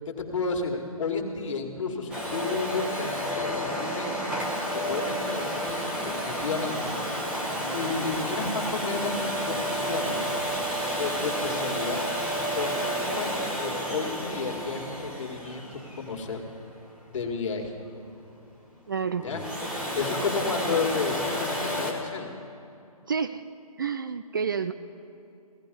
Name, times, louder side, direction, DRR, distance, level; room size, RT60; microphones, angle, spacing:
voice 1, 0.3-4.1 4.9-6.9 7.7-10.2 11.0-12.1 12.6-16.5 17.1-17.7 19.2-19.5 19.9-22.3, left 4 dB, 55° left, 1 dB, 2.1 m, -32 dB
Domestic sounds home sounds, 2.1-16.9 19.2-21.9, equal, 5° right, 1.0 m, -31 dB
voice 2, 18.9-19.3 23.1-23.5 23.8-24.7, right 6 dB, 35° right, 11 dB, 0.4 m, -29 dB
16.5 x 14.5 x 5.3 m, 2.6 s
figure-of-eight pair, 150°, 20 cm